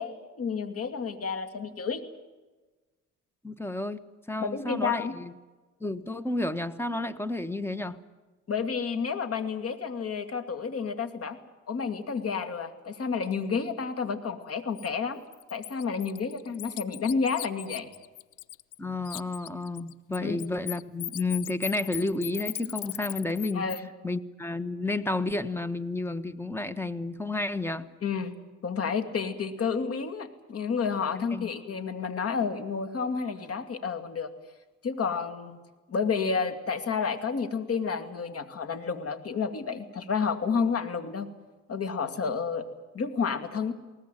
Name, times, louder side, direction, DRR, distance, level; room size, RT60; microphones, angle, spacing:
voice 1, 0.0-2.0 4.4-5.1 8.5-11.4 11.7-15.2 15.5-17.9 20.2-20.4 23.5-23.8 28.0-28.4 28.6-34.3 34.8-35.6 35.9-41.3 41.7-42.6 42.9-43.7, left 5 dB, 50° left, 9 dB, 2.6 m, -30 dB
voice 2, 3.4-5.3 5.8-8.0 18.8-23.7 24.0-27.9 31.2-31.5, left 2 dB, 10° left, 13 dB, 1.4 m, -31 dB
Bird, 14.8-14.9 15.3-18.8 19.0-23.8, left 14 dB, 85° left, 0.7 m, -38 dB
21.5 x 19.0 x 9.2 m, 1.2 s
cardioid pair, 90°, 30 cm